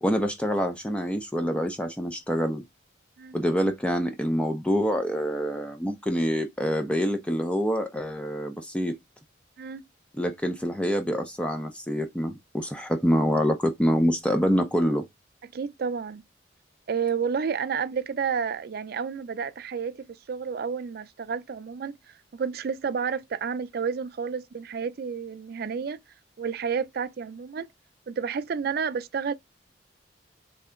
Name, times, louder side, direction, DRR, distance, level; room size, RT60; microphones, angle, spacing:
voice 1, 0.0-2.6 3.3-8.9 10.1-15.0, equal, 5° left, 0.5 m, -26 dB
voice 2, 15.5-16.2 16.9-22.0 22.3-26.0 26.4-27.7 28.1-29.3, right 6 dB, 55° right, 0.4 m, -30 dB
3.3 x 2.7 x 3.6 m
head